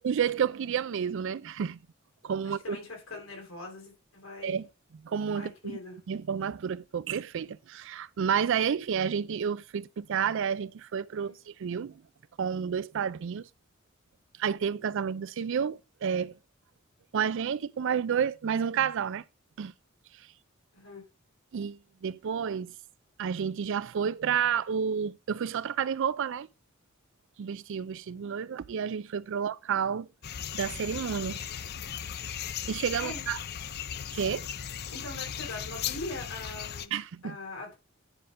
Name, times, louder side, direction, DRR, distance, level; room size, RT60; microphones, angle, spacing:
voice 1, 0.0-1.8 2.2-2.8 4.4-4.7 5.0-5.8 6.1-11.3 11.6-12.0 12.4-13.5 14.4-16.4 17.1-19.2 19.6-19.7 21.5-22.7 23.2-26.5 27.4-30.1 30.5-31.4 32.7-33.4 34.1-34.5 36.9-37.4, right 7 dB, 65° right, 0.4 m, -30 dB
voice 2, 2.4-4.6 5.4-6.0 11.1-11.4 20.7-21.1 33.0-33.3 34.9-36.9 37.2-37.7, left 2 dB, 80° left, 3.9 m, -42 dB
sound 1, 30.2-36.9, left 9 dB, 50° left, 0.5 m, -37 dB
10.0 x 3.7 x 5.4 m
head